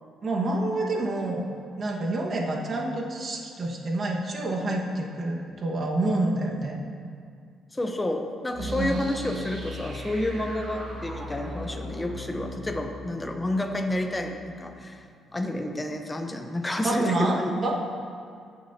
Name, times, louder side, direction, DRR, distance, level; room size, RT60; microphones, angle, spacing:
voice 1, 0.2-1.5 1.8-6.8 8.7-9.0 16.8-17.8, right 2 dB, 45° right, -1 dB, 1.6 m, -28 dB
voice 2, 7.7-15.0 15.3-17.5, left 1 dB, 15° left, 4 dB, 0.9 m, -30 dB
sound 1, 8.5-15.3, equal, 70° right, 2.3 m, -38 dB
15.5 x 7.3 x 2.9 m, 2.3 s
cardioid pair, 90°, 0 cm